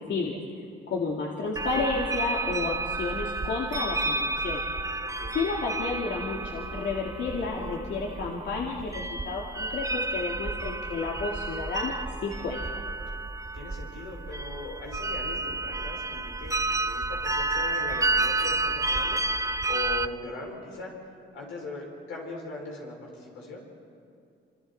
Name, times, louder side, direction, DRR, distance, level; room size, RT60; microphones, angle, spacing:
voice 1, 0.9-4.6 5.3-12.6, left 4 dB, 65° left, -2 dB, 2.6 m, -31 dB
sound 1, 1.6-20.1, right 2 dB, 15° right, 0.7 m, -31 dB
voice 2, 5.0-5.4 13.5-16.6 16.8-20.9 21.3-23.6, left 3 dB, 90° left, -2 dB, 6.5 m, -40 dB
27.5 x 26.0 x 4.3 m, 2.4 s
cardioid pair, 90°, 20 cm